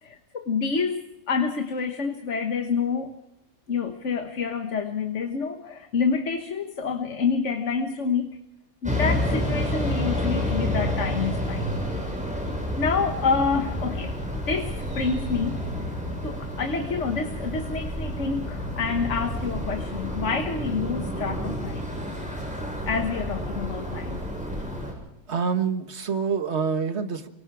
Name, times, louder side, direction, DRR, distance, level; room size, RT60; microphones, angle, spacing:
voice 1, 0.0-3.1 3.7-8.4 8.8-11.7 12.8-14.2 14.5-15.7 16.2-22.0 22.9-24.3, left 5 dB, 55° left, 6 dB, 1.7 m, -28 dB
sound 1, 8.8-24.9, left 1 dB, 5° right, 7.3 m, -29 dB
voice 2, 25.3-27.3, right 6 dB, 50° right, 8 dB, 1.7 m, -26 dB
28.5 x 24.0 x 4.8 m, 0.86 s
omnidirectional pair, 1.5 m